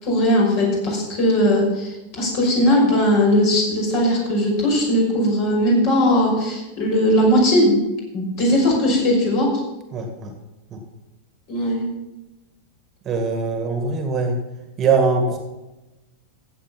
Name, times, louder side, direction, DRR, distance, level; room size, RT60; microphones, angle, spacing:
voice 1, 0.0-7.8 8.1-9.6 11.5-11.8, equal, 45° left, -2 dB, 6.0 m, -19 dB
voice 2, 9.9-10.3 10.7-10.8 13.1-14.4 14.8-15.4, right 4 dB, 30° right, 5 dB, 1.9 m, -21 dB
15.5 x 8.4 x 5.9 m, 1.0 s
figure-of-eight pair, 90°, 0 cm